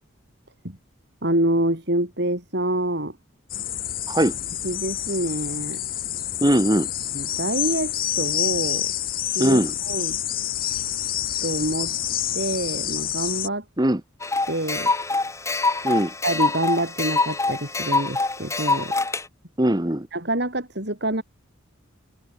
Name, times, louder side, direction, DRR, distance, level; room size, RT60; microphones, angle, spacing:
voice 1, 1.2-3.2 4.6-5.8 7.1-8.9 9.3-10.2 11.4-11.9 12.3-13.6 14.5-14.9 16.2-18.9 20.1-21.2, right 1 dB, 50° right, 4.7 m, -26 dB
sound 1, 3.5-13.5, left 12 dB, 45° left, 6.6 m, -28 dB
voice 2, 6.4-6.9 9.4-9.7 13.8-14.0 15.8-16.1 19.6-20.1, right 1 dB, 20° right, 1.2 m, -20 dB
sound 2, 14.2-19.2, left 3 dB, 15° left, 2.3 m, -24 dB
head